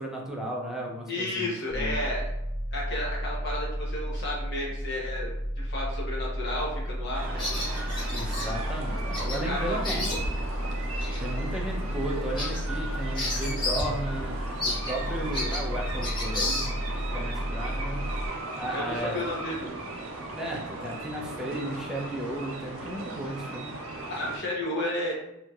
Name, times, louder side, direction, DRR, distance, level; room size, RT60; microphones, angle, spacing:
voice 1, 0.0-1.5 1.7-2.0 8.1-10.2 11.2-18.0 18.6-19.2 20.4-23.7, right 1 dB, ahead, -2 dB, 0.4 m, -35 dB
voice 2, 1.1-2.2 2.7-5.3 5.6-7.5 9.4-10.0 10.9-11.2 18.7-19.7 23.9-25.1, left 1 dB, 55° left, -3 dB, 0.8 m, -32 dB
sound 1, 1.7-18.3, equal, 85° left, 1.4 m, -33 dB
sound 2, 7.1-24.4, right 2 dB, 75° right, 0.5 m, -37 dB
Bird vocalization bird call bird song, 7.4-8.5 9.1-9.4 9.7-10.5 11.0-11.2 11.6-11.7 12.1-13.9 14.2-14.3 14.6-17.0, left 2 dB, 20° left, 0.9 m, -32 dB
2.9 x 2.6 x 2.3 m, 0.85 s
head